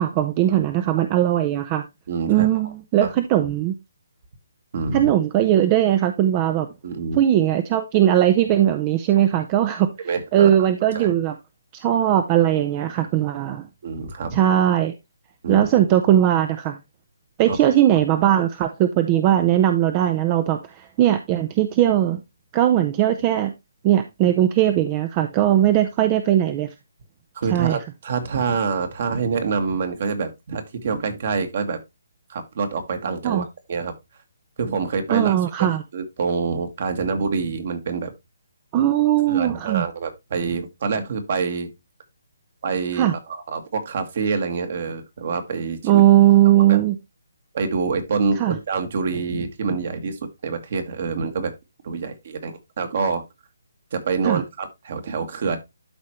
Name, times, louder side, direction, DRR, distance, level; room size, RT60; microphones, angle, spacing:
voice 1, 0.0-1.8 2.3-3.7 4.9-6.7 7.2-9.9 10.3-11.3 11.7-13.7 14.3-14.9 15.5-16.8 17.4-22.2 22.5-23.5 23.8-26.7 27.5-27.8 33.2-33.4 35.1-35.8 38.7-39.8 42.9-43.1 45.8-47.0 48.4-48.6 54.2-54.4, right 12 dB, 25° right, 0.6 m, -19 dB
voice 2, 2.1-2.5 3.0-3.1 4.7-5.1 6.8-7.2 10.0-10.5 10.9-11.1 13.8-14.4 15.4-15.6 17.5-18.0 27.4-31.8 32.3-33.9 34.6-38.1 39.3-41.7 42.6-46.0 46.7-46.8 47.5-51.5 51.8-53.2 53.9-55.6, right 5 dB, 50° right, 1.8 m, -26 dB
12.0 x 4.3 x 3.1 m
figure-of-eight pair, 150°, 0 cm